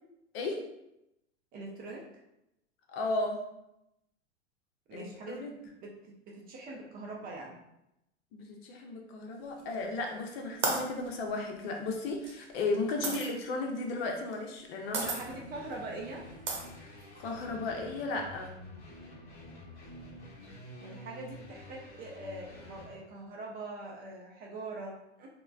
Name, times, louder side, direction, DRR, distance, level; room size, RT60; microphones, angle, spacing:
voice 1, 1.5-2.0 4.9-5.6 5.8-7.5 13.0-13.1 14.9-16.2 20.8-25.3, right 2 dB, 25° right, -1 dB, 0.4 m, -43 dB
voice 2, 2.9-3.4 4.9-5.5 8.3-15.0 17.2-18.5, left 3 dB, 55° left, 2 dB, 0.7 m, -34 dB
sound 1, 9.6-10.1 10.6-13.3 14.3-14.6 14.9-15.2 15.7-15.8 16.5-17.4, right 3 dB, 75° right, 0.8 m, -34 dB
sound 2, 15.0-22.9, left 1 dB, 25° left, 1.0 m, -49 dB
3.1 x 2.1 x 2.3 m, 0.86 s
hypercardioid pair, 95°, 36 cm